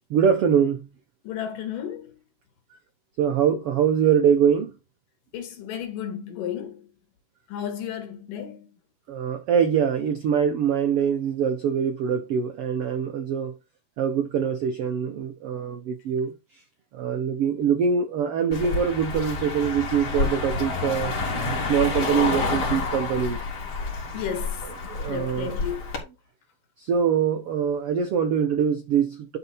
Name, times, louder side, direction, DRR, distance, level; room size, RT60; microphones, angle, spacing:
voice 1, 0.1-0.9 3.2-4.7 9.1-13.5 14.0-16.3 16.9-21.1 21.7-23.4 24.6-25.5 26.8-29.4, right 7 dB, 80° right, 1.3 m, -23 dB
voice 2, 1.2-2.2 5.3-6.9 7.5-8.7 24.1-26.0, left 9 dB, 75° left, 3.1 m, -33 dB
Car passing by, 18.5-26.0, left 3 dB, 50° left, 3.6 m, -29 dB
11.5 x 4.0 x 4.3 m
omnidirectional pair, 3.8 m